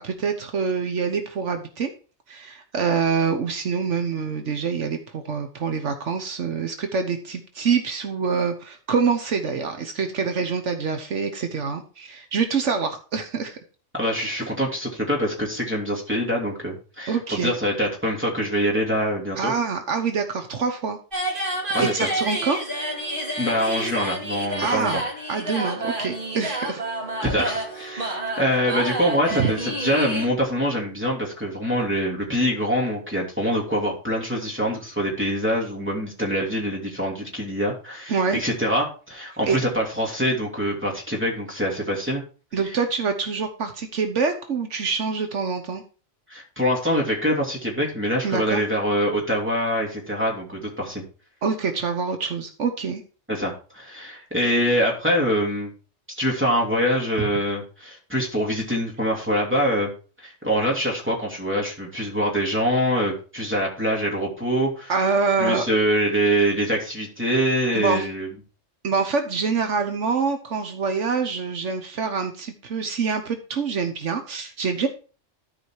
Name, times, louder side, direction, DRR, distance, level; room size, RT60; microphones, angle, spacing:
voice 1, 0.0-1.9 2.3-13.6 17.1-17.5 19.4-21.0 21.3-21.4 21.8-22.6 24.6-25.0 25.3-26.8 29.3-29.5 38.1-38.4 39.5-39.6 42.5-45.8 48.2-48.6 51.4-53.0 57.2-57.3 64.9-65.6 67.7-68.1 68.8-74.9, right 5 dB, 75° right, 6 dB, 1.4 m, -25 dB
voice 2, 13.9-19.5 21.7-22.1 23.4-25.0 27.2-42.2 46.3-51.0 53.3-55.7 56.2-59.9 60.2-64.9 65.4-68.3, equal, 10° right, -2 dB, 3.0 m, -24 dB
sound 1, 21.1-30.3, right 1 dB, 45° right, 3.1 m, -29 dB
12.5 x 5.1 x 4.7 m, 0.37 s
omnidirectional pair, 1.3 m